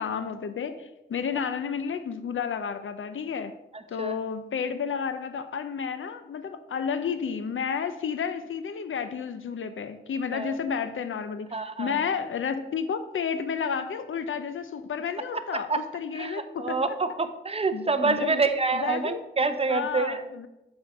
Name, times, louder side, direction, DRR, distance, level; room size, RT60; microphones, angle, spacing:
voice 1, 0.0-3.5 3.9-11.5 11.8-17.0 17.7-18.4 18.7-19.2 19.7-20.5, left 6 dB, 90° left, 0.5 m, -31 dB
voice 2, 3.7-4.2 10.3-10.6 11.5-12.0 15.7-15.8 16.1-20.2, right 4 dB, 30° right, 0.7 m, -27 dB
7.4 x 4.3 x 5.8 m
wide cardioid pair, 80°, 20 cm